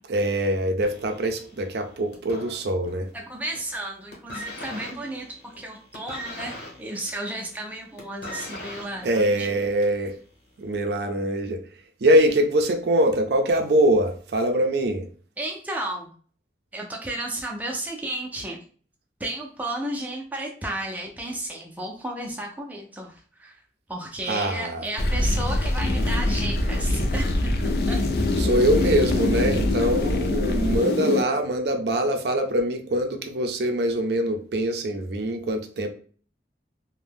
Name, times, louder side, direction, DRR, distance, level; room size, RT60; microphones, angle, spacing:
voice 1, 0.1-3.1 9.0-10.2 10.6-11.6 12.0-15.1 24.3-24.9 28.4-35.9, right 1 dB, 70° right, 6 dB, 0.5 m, -23 dB
sound 1, 0.8-3.2 3.4-3.8 4.1-10.1 10.9-11.0, equal, 85° left, 1.0 m, -40 dB
voice 2, 3.1-9.5 15.4-16.1 16.7-18.6 19.2-23.6 23.9-27.5 27.9-28.0, right 1 dB, 10° right, 0 dB, 0.4 m, -33 dB
sound 2, 25.0-31.2, left 2 dB, 60° left, 0.4 m, -23 dB
2.6 x 2.1 x 3.4 m, 0.43 s
head